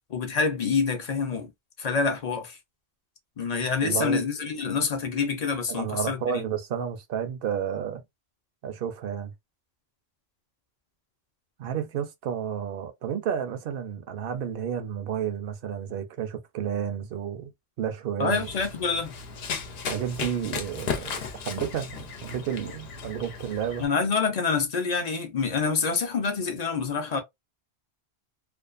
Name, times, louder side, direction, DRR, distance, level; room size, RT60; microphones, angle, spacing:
voice 1, 0.1-1.5 1.8-2.6 3.4-6.4 18.2-19.1 23.8-27.2, left 5 dB, 45° left, 0.6 m, -27 dB
voice 2, 3.8-4.3 5.7-8.0 8.6-9.3 11.6-17.5 17.8-18.5 19.9-21.2 21.4-23.8, right 8 dB, 65° right, 0.7 m, -31 dB
Run, 18.3-23.9, left 6 dB, 75° left, 0.8 m, -35 dB
2.5 x 2.3 x 2.3 m
omnidirectional pair, 1.1 m